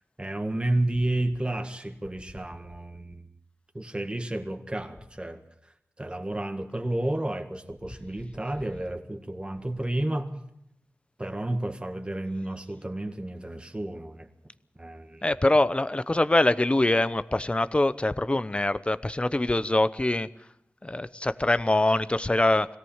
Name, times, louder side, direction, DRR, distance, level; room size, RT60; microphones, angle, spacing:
voice 1, 0.2-3.3 3.7-5.4 6.0-10.4 11.2-14.3 14.8-15.3, right 1 dB, 20° right, 5 dB, 1.8 m, -31 dB
voice 2, 15.2-20.3 20.8-22.7, left 2 dB, 25° left, 14 dB, 0.8 m, -24 dB
22.0 x 17.5 x 7.3 m, 0.79 s
wide cardioid pair, 80°, 5 cm